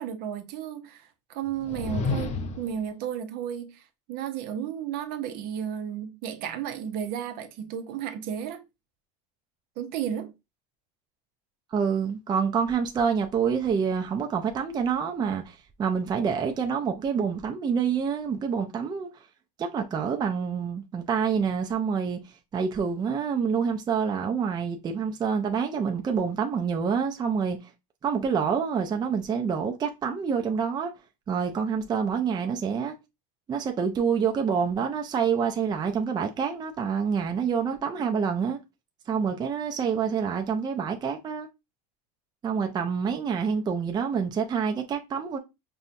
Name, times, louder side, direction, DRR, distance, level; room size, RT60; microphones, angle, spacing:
voice 1, 0.0-3.8 4.1-8.6 9.8-10.3, right 9 dB, 55° right, 0.7 m, -33 dB
sound 1, 1.5-2.8, left 4 dB, 35° left, 0.6 m, -30 dB
voice 2, 11.7-19.1 19.6-22.2 22.5-27.6 28.0-30.9 31.3-32.9 33.5-38.6 39.1-41.5 42.4-45.4, right 6 dB, 20° right, 0.5 m, -27 dB
5.4 x 2.2 x 2.6 m
supercardioid pair, 130°, 19 cm